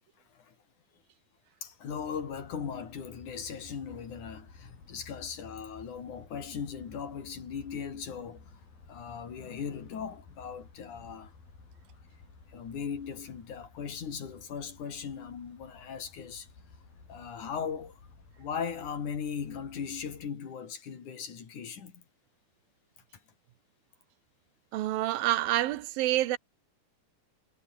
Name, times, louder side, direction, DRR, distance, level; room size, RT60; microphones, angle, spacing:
voice 1, 1.6-8.6 8.9-11.3 12.5-16.5 17.1-18.0 18.4-22.0, left 7 dB, 55° left, 4.5 m, -38 dB
sound 1, 1.9-20.3, left 4 dB, 75° left, 9.5 m, -54 dB
voice 2, 24.7-26.4, right 15 dB, 80° right, 2.8 m, -27 dB
omnidirectional pair, 4.2 m